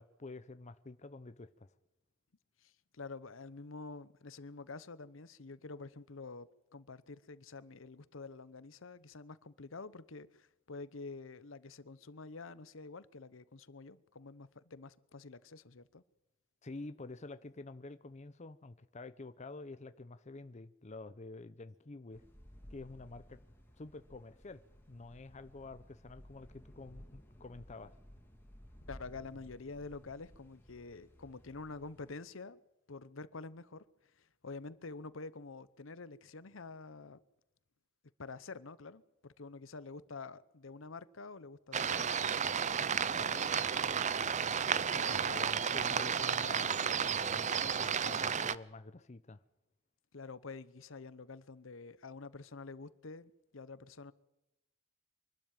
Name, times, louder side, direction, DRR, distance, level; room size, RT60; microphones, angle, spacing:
voice 1, 0.0-1.7 16.6-22.3 22.7-23.4 23.8-24.6 24.9-28.0 43.2-43.6 45.1-49.4, left 3 dB, 35° left, 0.7 m, -49 dB
voice 2, 2.6-6.5 6.7-16.0 28.9-32.6 32.9-33.8 34.2-37.2 38.2-42.2 44.9-45.5 50.1-54.1, left 3 dB, 70° left, 0.9 m, -48 dB
sound 1, 22.1-32.1, equal, 10° left, 3.1 m, -57 dB
sound 2, 41.7-48.5, right 7 dB, 35° right, 0.6 m, -32 dB
24.0 x 12.5 x 9.0 m
head